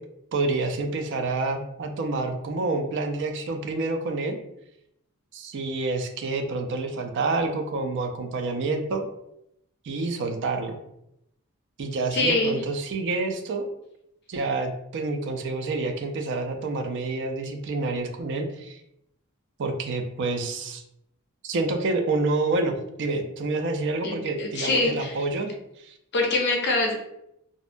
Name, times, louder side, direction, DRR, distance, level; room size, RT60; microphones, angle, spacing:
voice 1, 0.3-4.4 5.3-9.0 9.8-10.7 11.8-13.7 14.3-18.8 19.6-20.8 21.4-25.5 25.8-25.9, right 3 dB, 55° right, 5 dB, 0.4 m, -28 dB
voice 2, 12.1-12.5 24.0-25.2 26.1-26.9, left 2 dB, 50° left, 1 dB, 0.6 m, -24 dB
2.6 x 2.2 x 2.5 m, 0.80 s
head